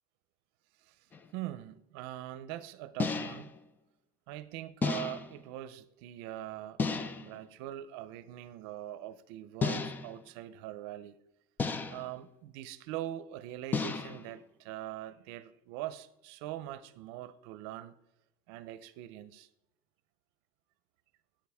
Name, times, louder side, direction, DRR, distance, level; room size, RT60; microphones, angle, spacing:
sound 1, 1.1-1.3 3.0-3.6 4.8-5.4 6.8-7.4 9.6-10.2 11.6-12.2 13.7-14.3, left 4 dB, 15° left, 0.3 m, -33 dB
voice 1, 1.3-3.5 4.3-6.8 7.2-11.2 11.9-17.9 18.5-19.5, right 13 dB, 65° right, 0.6 m, -42 dB
9.1 x 9.1 x 3.5 m
cardioid pair, 170°, 14 cm